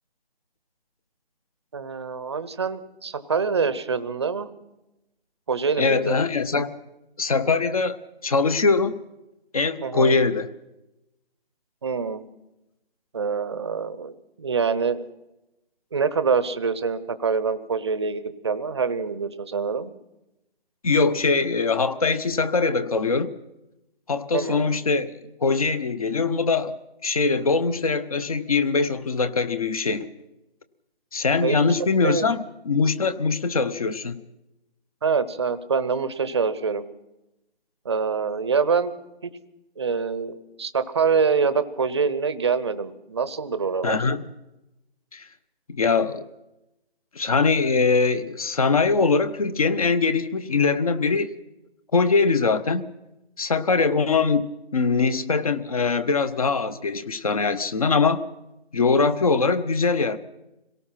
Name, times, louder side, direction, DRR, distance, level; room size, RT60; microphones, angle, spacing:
voice 1, 1.7-4.5 5.5-6.1 9.8-10.1 11.8-12.2 13.1-15.0 15.9-19.9 24.3-24.7 31.4-31.7 32.0-32.2 35.0-36.8 37.8-38.9 39.2-39.3 39.8-44.0, right 5 dB, 25° right, 0.8 m, -25 dB
voice 2, 5.8-6.7 7.2-8.0 8.2-9.0 9.5-10.5 20.8-23.3 24.1-26.8 27.0-30.1 31.1-34.2 43.8-44.2 45.1-45.3 45.7-46.2 47.1-51.3 51.9-52.8 53.4-58.2 58.7-60.2, left 4 dB, 35° left, 1.0 m, -22 dB
26.0 x 18.0 x 5.9 m
figure-of-eight pair, 160°, 32 cm